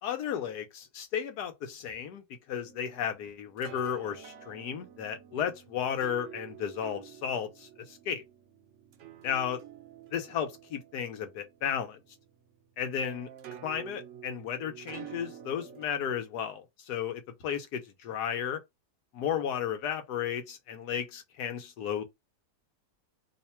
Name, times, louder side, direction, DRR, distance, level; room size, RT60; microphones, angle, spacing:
voice 1, 0.0-8.2 9.2-9.6 10.1-12.0 12.8-13.3 13.6-18.6 19.1-22.0, left 8 dB, 75° left, 1.3 m, -34 dB
sound 1, 2.6-15.9, right 10 dB, 65° right, 0.8 m, -49 dB
3.1 x 2.2 x 4.2 m
omnidirectional pair, 1.7 m